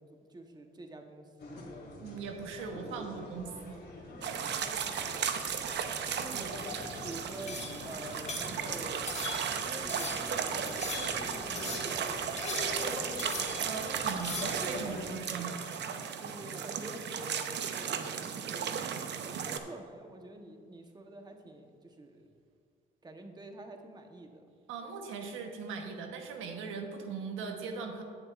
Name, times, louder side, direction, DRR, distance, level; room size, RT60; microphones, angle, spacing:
voice 1, 0.0-1.7 4.9-5.3 6.2-9.0 9.4-13.7 16.2-17.5 17.7-18.7 19.2-22.3 23.0-24.4, right 2 dB, 20° right, 4 dB, 1.0 m, -48 dB
sound 1, 1.4-15.0, left 2 dB, 60° left, 2.3 m, -44 dB
voice 2, 2.0-3.8 6.3-6.5 13.6-15.7 24.7-28.0, right 5 dB, 90° right, 4 dB, 1.0 m, -40 dB
sound 2, 4.2-19.6, right 7 dB, 60° right, 0.7 m, -35 dB
sound 3, 7.5-7.9 8.3-8.6 9.1-9.6 9.9-10.3 10.6-11.3 11.5-12.0 12.4-12.9 13.2-13.7 14.1-14.6, left 4 dB, 35° left, 1.6 m, -40 dB
16.5 x 7.0 x 2.4 m, 2.3 s
cardioid pair, 90°, 20 cm